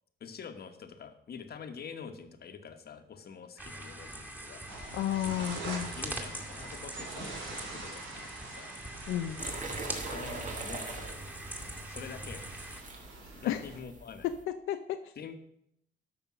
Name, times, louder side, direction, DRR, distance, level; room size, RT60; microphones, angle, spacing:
voice 1, 0.2-4.6 5.3-5.5 6.0-8.7 9.6-9.8 10.1-11.2 11.9-12.5 13.2-14.3 15.1-15.4, left 6 dB, 50° left, 7 dB, 1.3 m, -46 dB
sound 1, 3.6-12.8, right 1 dB, 10° right, 2.2 m, -42 dB
sound 2, 4.7-13.8, right 3 dB, 85° right, 3.6 m, -45 dB
voice 2, 4.9-5.9 9.1-9.4 13.5-13.6 14.2-15.0, left 11 dB, 85° left, 6 dB, 0.6 m, -32 dB
sound 3, 9.4-14.4, right 3 dB, 40° right, 1.7 m, -43 dB
13.0 x 5.3 x 6.3 m, 0.75 s
cardioid pair, 90°, 20 cm